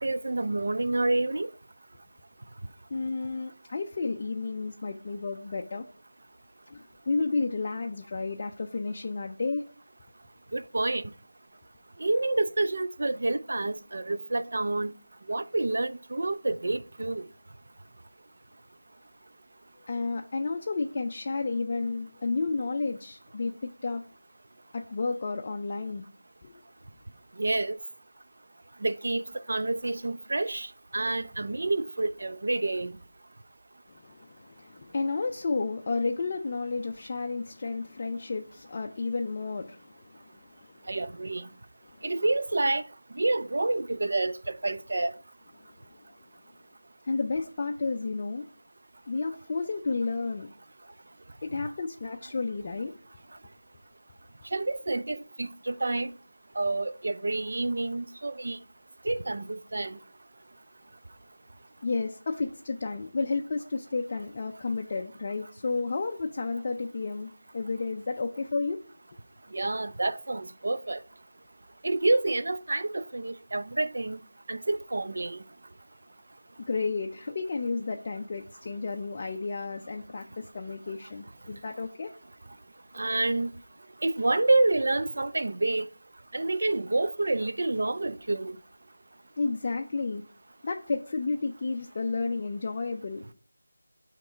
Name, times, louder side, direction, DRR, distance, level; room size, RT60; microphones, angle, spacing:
voice 1, 0.0-1.5 10.5-11.1 12.0-14.9 15.3-17.2 27.4-27.8 28.8-32.9 40.9-41.5 42.0-42.8 43.1-45.1 54.5-56.1 56.6-58.6 59.0-60.0 69.5-71.0 71.8-74.2 74.5-75.4 82.9-83.5 84.0-85.9 86.3-88.5, right 2 dB, 55° right, 0.4 m, -28 dB
voice 2, 2.9-5.9 6.7-9.6 19.9-24.0 24.7-26.0 26.4-26.6 33.9-41.0 41.9-42.1 45.6-46.0 47.0-48.4 49.1-50.5 51.4-52.9 61.8-68.8 76.7-82.1 89.4-90.2 90.6-93.2, left 3 dB, 30° left, 0.3 m, -32 dB
6.8 x 2.9 x 4.9 m
figure-of-eight pair, 170°, 0 cm